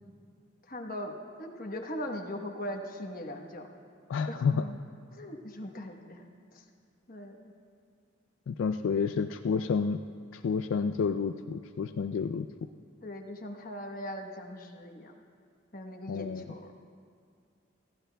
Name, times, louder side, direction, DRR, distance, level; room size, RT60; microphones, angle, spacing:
voice 1, 0.7-3.7 4.3-4.8 5.1-6.2 6.5-6.6 7.1-7.5 13.0-15.2 15.7-16.7, left 1 dB, 45° left, 3 dB, 1.1 m, -40 dB
voice 2, 4.1-4.7 8.5-10.0 10.3-12.5 16.1-16.5, left 5 dB, 80° left, 8 dB, 0.3 m, -29 dB
24.0 x 15.0 x 2.3 m, 2.2 s
head